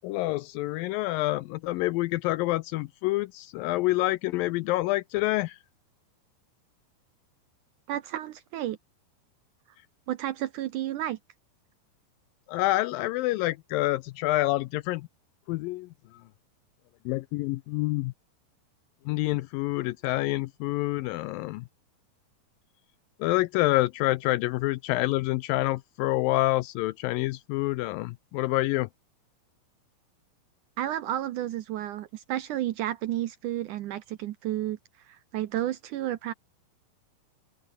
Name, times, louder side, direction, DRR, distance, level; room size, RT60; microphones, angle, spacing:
voice 1, 0.0-5.6 12.5-15.1 15.5-16.2 17.1-18.1 19.1-21.7 23.2-28.9, left 18 dB, 80° left, 2.1 m, -27 dB
voice 2, 7.9-8.8 10.1-11.2 30.8-34.8 35.1-36.3, right 13 dB, 75° right, 2.0 m, -31 dB
open air
omnidirectional pair, 4.4 m